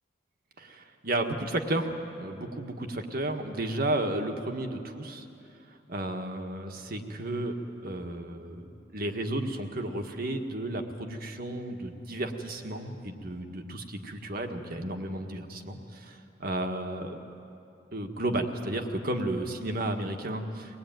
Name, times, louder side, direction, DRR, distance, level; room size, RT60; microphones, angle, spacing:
voice 1, 0.6-5.2 5.9-7.5 7.8-15.8 16.4-17.2 17.9-20.8, right 1 dB, 50° right, 5 dB, 1.7 m, -33 dB
23.5 x 19.0 x 9.3 m, 2.7 s
head